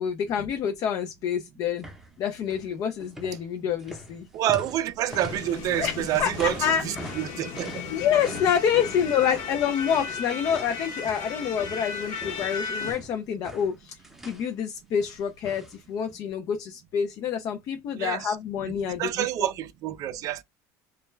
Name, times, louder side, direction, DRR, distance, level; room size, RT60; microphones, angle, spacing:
voice 1, 0.0-1.8 2.2-4.3 5.8-6.3 6.6-7.1 7.9-14.0 14.3-19.1, left 8 dB, 45° left, 0.4 m, -27 dB
sound 1, 1.8-2.1 2.4-2.7 3.0-11.9 12.2-14.5 15.0-15.8 16.1-16.2, right 1 dB, 5° right, 0.6 m, -43 dB
voice 2, 4.3-7.8 9.2-9.4 17.9-18.4 18.6-18.7 19.0-20.4, right 12 dB, 50° right, 0.3 m, -28 dB
sound 2, 5.1-12.9, left 5 dB, 65° left, 1.0 m, -36 dB
2.2 x 2.1 x 3.1 m
supercardioid pair, 115°, 8 cm